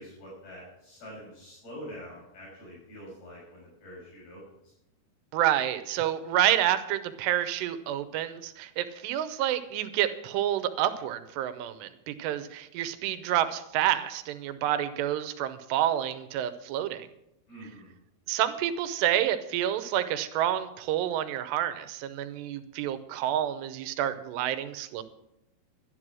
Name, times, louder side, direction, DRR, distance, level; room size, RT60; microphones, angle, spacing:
voice 1, 0.0-4.4 17.5-17.9, equal, 65° left, -5 dB, 7.9 m, -45 dB
voice 2, 5.3-17.1 18.3-25.0, right 11 dB, 85° right, 11 dB, 2.9 m, -28 dB
12.5 x 10.5 x 6.2 m, 0.83 s
omnidirectional pair, 4.7 m